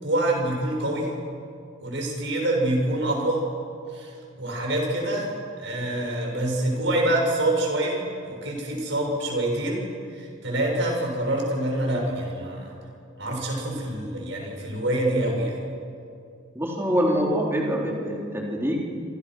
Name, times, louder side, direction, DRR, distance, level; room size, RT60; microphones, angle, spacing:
voice 1, 0.0-1.1 1.8-3.4 3.9-9.8 10.1-12.8 13.2-15.6, right 1 dB, 60° right, 0 dB, 6.9 m, -26 dB
voice 2, 16.5-18.8, equal, 10° right, -2 dB, 3.8 m, -25 dB
27.0 x 26.0 x 6.4 m, 2.4 s
head